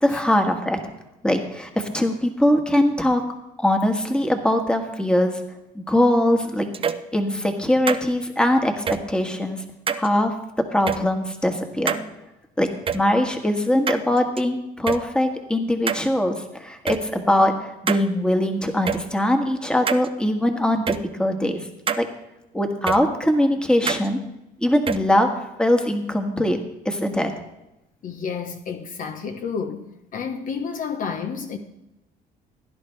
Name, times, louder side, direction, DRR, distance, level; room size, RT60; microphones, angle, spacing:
voice 1, 0.0-0.8 1.2-3.2 3.6-5.4 5.7-6.7 7.1-9.6 10.0-10.3 10.7-12.0 12.6-21.6 22.0-22.1 22.5-24.2 24.6-25.3 25.6-26.6 26.8-27.3, left 1 dB, 5° left, 1.5 m, -21 dB
sound 1, 6.7-7.0 7.9-8.0 8.9-9.0 9.9-10.1 10.9-11.0 11.9-12.0 12.9-13.0 13.9-14.4 14.9-15.0 15.9-16.1 16.9-17.0 17.9-18.0 18.9-19.0 19.9-20.1 20.9-21.0 21.9-22.0 22.9-23.0 23.9-24.1 24.9-25.0, right 7 dB, 30° right, 0.6 m, -25 dB
voice 2, 28.0-29.9 30.1-31.6, left 6 dB, 50° left, 1.0 m, -30 dB
17.0 x 10.5 x 3.3 m
cardioid pair, 110°, 17 cm